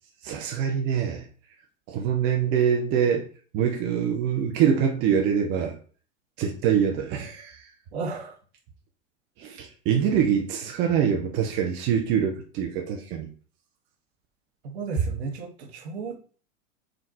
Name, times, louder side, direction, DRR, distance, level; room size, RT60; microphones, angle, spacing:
voice 1, 0.2-1.3 1.9-3.3 3.5-5.7 6.4-7.6 9.4-13.3, right 8 dB, 30° right, 1 dB, 0.5 m, -24 dB
voice 2, 7.9-8.4 14.6-16.2, right 4 dB, 55° right, 3 dB, 0.9 m, -34 dB
3.7 x 2.3 x 2.6 m, 0.41 s
figure-of-eight pair, 90°, 38 cm